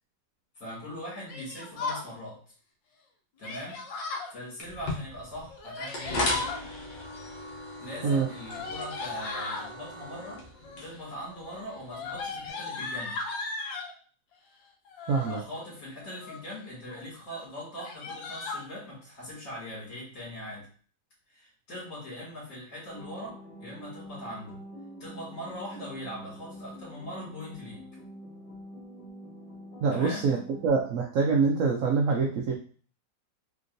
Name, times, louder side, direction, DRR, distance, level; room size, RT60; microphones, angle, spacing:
voice 1, 0.6-2.4 3.4-3.8 4.3-6.3 7.8-10.4 10.8-13.2 15.2-20.7 21.3-24.6 25.0-27.8 29.9-30.3, equal, 50° left, -6 dB, 2.5 m, -41 dB
Yell, 1.3-2.1 3.4-4.3 5.5-6.6 7.9-9.7 10.5-11.0 11.3-13.9 14.8-15.4 16.0-16.5 16.9-17.0 17.3-17.4 17.7-18.6, left 4 dB, 85° left, 1.4 m, -37 dB
sound 1, 4.6-12.5, left 2 dB, 65° left, 1.5 m, -37 dB
voice 2, 15.1-15.4 29.8-30.4 30.6-32.5, right 5 dB, 90° right, 1 dB, 0.7 m, -25 dB
sound 2, 22.9-30.7, equal, 25° left, 1.3 m, -46 dB
3.9 x 3.5 x 2.5 m, 0.43 s
omnidirectional pair, 2.0 m